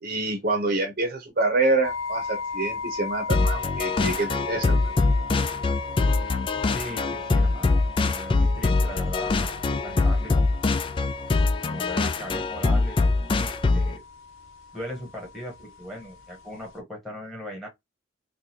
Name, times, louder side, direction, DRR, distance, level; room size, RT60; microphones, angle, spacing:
voice 1, 0.0-4.8, right 2 dB, 45° right, 0.8 m, -26 dB
sound 1, 1.8-16.8, left 4 dB, 80° left, 1.0 m, -38 dB
sound 2, 3.3-14.0, left 3 dB, 25° left, 0.3 m, -23 dB
voice 2, 6.7-7.8 8.1-10.5 11.6-13.0 13.4-14.0 14.7-17.7, equal, ahead, 1.5 m, -38 dB
3.9 x 2.4 x 2.8 m
head